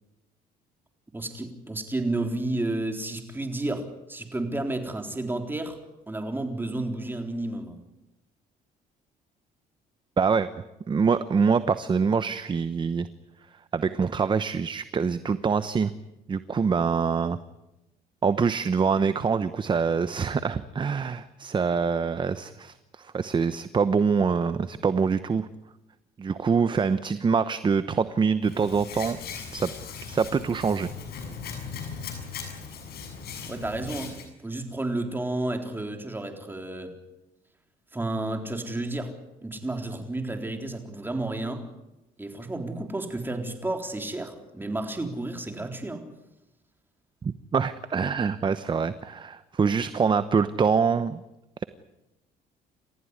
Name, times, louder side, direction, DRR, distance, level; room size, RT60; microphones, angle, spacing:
voice 1, 1.1-5.8 6.1-7.8 33.5-36.9 37.9-39.1 39.4-41.7 42.2-46.1, right 2 dB, 10° right, 5 dB, 3.9 m, -31 dB
voice 2, 10.2-10.5 10.9-13.1 13.7-15.9 16.3-17.4 18.2-25.5 26.2-29.2 29.5-29.7 30.1-30.9 47.2-51.2, right 5 dB, 30° right, 13 dB, 1.0 m, -25 dB
Hands, 28.4-34.2, left 6 dB, 65° left, 7.1 m, -38 dB
29.5 x 15.0 x 9.7 m, 0.97 s
cardioid pair, 110°, 17 cm